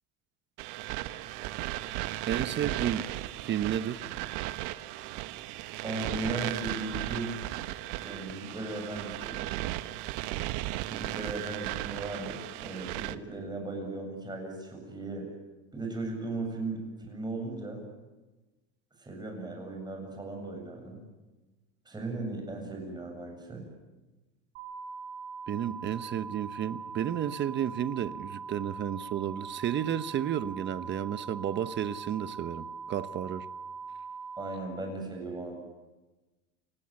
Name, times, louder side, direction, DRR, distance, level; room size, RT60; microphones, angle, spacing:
sound 1, 0.6-13.2, right 16 dB, 65° right, 1.1 m, -36 dB
voice 1, 2.3-3.1 3.4-4.0 25.5-33.5, right 10 dB, 35° right, 1.1 m, -32 dB
voice 2, 5.8-7.4 8.0-9.5 10.9-15.3 15.7-17.8 19.0-21.0 21.9-23.6 34.4-35.6, right 2 dB, 10° right, 7.8 m, -37 dB
sound 2, 24.6-34.6, right 5 dB, 85° right, 5.3 m, -41 dB
29.5 x 16.5 x 8.9 m
supercardioid pair, 130°, 33 cm